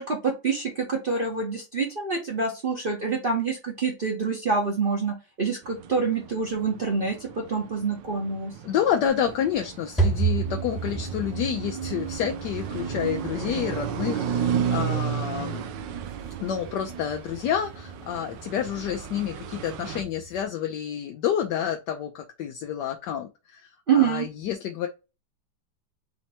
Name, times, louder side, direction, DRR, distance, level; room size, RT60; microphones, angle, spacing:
voice 1, 0.0-8.5 23.9-24.2, right 5 dB, 35° right, 1.0 m, -26 dB
sound 1, 5.6-20.0, right 8 dB, 90° right, 1.3 m, -33 dB
voice 2, 8.6-15.7 16.4-24.9, left 9 dB, 75° left, 1.2 m, -29 dB
sound 2, 9.1-20.4, right 4 dB, ahead, 1.0 m, -33 dB
4.2 x 2.9 x 4.2 m
omnidirectional pair, 1.9 m